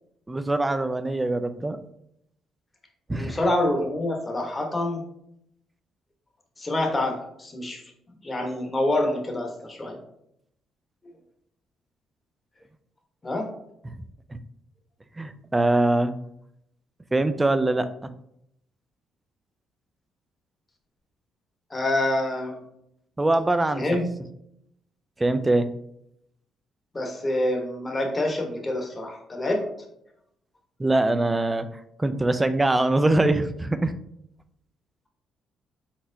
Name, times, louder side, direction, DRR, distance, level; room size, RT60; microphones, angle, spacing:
voice 1, 0.3-1.8 3.1-3.4 13.8-14.0 14.3-14.4 15.2-16.1 17.1-18.1 23.2-23.8 25.2-25.7 30.8-31.7 32.0-33.9, right 2 dB, 15° right, 11 dB, 0.3 m, -23 dB
voice 2, 3.1-5.0 6.6-7.8 8.2-10.0 13.2-13.5 21.7-22.6 23.8-24.0 26.9-29.7, left 1 dB, 20° left, 2 dB, 0.9 m, -26 dB
4.3 x 4.2 x 2.6 m, 0.76 s
cardioid pair, 125°, 0 cm